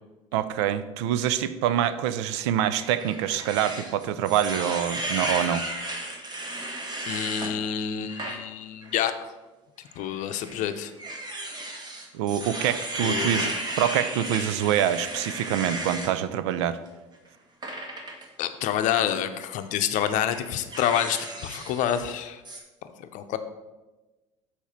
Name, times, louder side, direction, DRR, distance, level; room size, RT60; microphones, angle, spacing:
voice 1, 0.3-5.7 12.1-16.8, right 10 dB, 70° right, 13 dB, 0.5 m, -26 dB
sound 1, 2.7-7.5 8.0-8.4 8.8-8.9 10.0-16.1 17.6-18.2 19.2-19.4 19.9-22.2 22.4-22.6, right 1 dB, 25° right, 1.5 m, -34 dB
voice 2, 7.1-9.3 10.0-10.9 13.0-13.5 18.4-22.4 23.0-23.4, left 10 dB, 55° left, 9 dB, 0.7 m, -28 dB
7.0 x 4.4 x 5.7 m, 1.1 s
hypercardioid pair, 70°, 16 cm